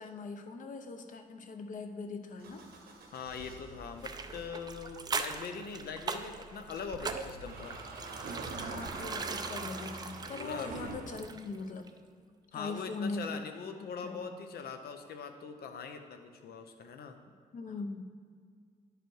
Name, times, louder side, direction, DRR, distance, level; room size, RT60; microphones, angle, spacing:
voice 1, 0.0-2.6 8.6-11.9 12.5-13.4 14.0-14.4 17.5-18.0, left 3 dB, 55° left, 5 dB, 0.7 m, -41 dB
Motor vehicle (road) / Engine starting, 2.4-10.9, right 3 dB, 90° right, 1.3 m, -47 dB
voice 2, 3.1-7.8 10.4-10.7 12.5-17.2, left 6 dB, 85° left, 6 dB, 0.8 m, -42 dB
sound 1, 4.0-11.6 11.9-12.0, right 4 dB, 25° right, 0.4 m, -40 dB
sound 2, 6.9-7.2 8.2-9.4 10.7-11.2, right 4 dB, 70° right, 0.7 m, -42 dB
10.0 x 5.0 x 4.7 m, 2.1 s
wide cardioid pair, 160°, 16 cm